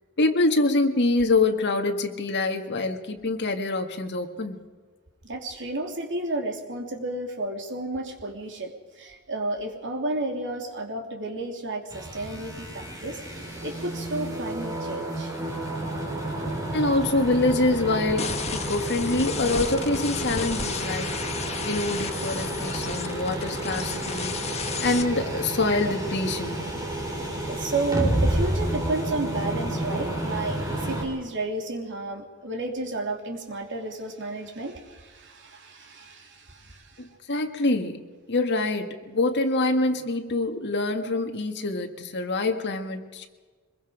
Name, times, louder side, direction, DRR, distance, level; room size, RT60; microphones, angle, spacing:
voice 1, 0.2-4.6 16.7-21.1 21.7-26.7 37.0-38.0 38.3-43.3, left 2 dB, 50° left, 5 dB, 1.9 m, -25 dB
voice 2, 5.2-15.3 27.5-37.1, right 2 dB, 55° right, 2 dB, 3.1 m, -32 dB
sound 1, 11.9-31.0, right 1 dB, 15° right, 4.8 m, -30 dB
sound 2, 18.2-25.0, left 5 dB, 30° left, 1.4 m, -33 dB
24.5 x 22.0 x 5.1 m, 1.4 s
head